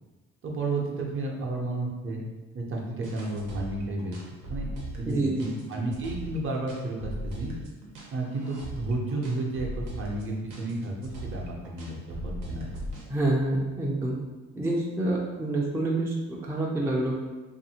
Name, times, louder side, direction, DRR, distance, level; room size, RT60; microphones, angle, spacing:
voice 1, 0.4-2.2 2.5-4.2 4.5-4.7 5.0-7.5 8.1-12.7, right 2 dB, 45° right, 0 dB, 0.6 m, -32 dB
sound 1, 3.0-13.1, right 1 dB, 90° right, 0.8 m, -39 dB
voice 2, 13.1-14.2 14.6-17.2, right 2 dB, 10° right, -2 dB, 0.4 m, -27 dB
2.6 x 2.5 x 2.8 m, 1.2 s
cardioid pair, 90°, 30 cm